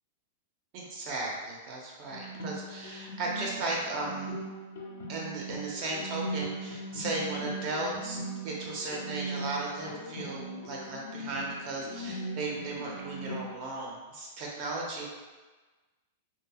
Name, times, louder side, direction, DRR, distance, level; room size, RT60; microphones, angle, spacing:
voice 1, 0.7-4.4 5.1-8.2 8.4-15.1, right 2 dB, 45° right, -2 dB, 0.7 m, -36 dB
sound 1, 2.1-13.5, right 1 dB, 75° left, 0.5 m, -39 dB
2.7 x 2.6 x 2.3 m, 1.3 s
hypercardioid pair, 140°, 0 cm